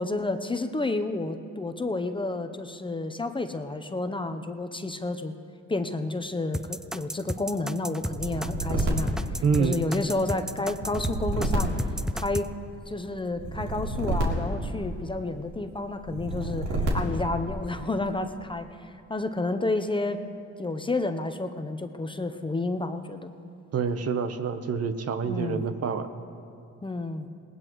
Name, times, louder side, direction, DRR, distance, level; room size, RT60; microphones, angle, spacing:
voice 1, 0.0-5.3 5.7-11.7 12.1-12.5 12.9-20.2 20.6-23.3 25.2-25.6 26.8-27.3, left 2 dB, 15° left, 7 dB, 0.7 m, -30 dB
sound 1, 6.5-12.5, equal, ahead, 0.3 m, -33 dB
sound 2, 8.0-10.0 10.7-12.6 13.4-15.3 16.0-17.4, right 1 dB, 75° right, 3.1 m, -30 dB
voice 2, 9.4-9.8 23.7-26.1, right 6 dB, 55° right, 9 dB, 1.0 m, -27 dB
19.5 x 19.0 x 3.1 m, 2.5 s
cardioid pair, 90°, 30 cm